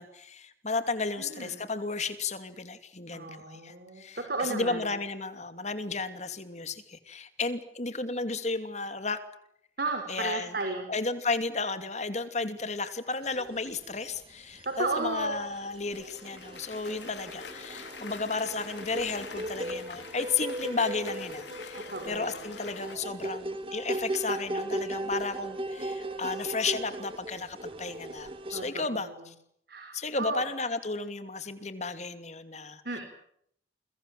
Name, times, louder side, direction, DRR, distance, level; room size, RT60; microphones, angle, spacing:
voice 1, 0.0-9.2 10.1-10.6 10.9-29.3 29.9-32.8, left 3 dB, 40° left, 10 dB, 2.7 m, -33 dB
voice 2, 1.2-1.6 3.1-4.9 9.8-10.9 14.6-15.3 21.9-22.4 28.5-29.2 29.7-30.4 32.8-33.0, right 3 dB, 60° right, 4 dB, 4.9 m, -34 dB
sound 1, 13.4-14.2 14.5-28.7, right 1 dB, 30° right, 2.7 m, -37 dB
Cheering / Applause, 15.8-23.0, left 5 dB, 75° left, 4.1 m, -45 dB
29.0 x 23.0 x 7.8 m, 0.71 s
head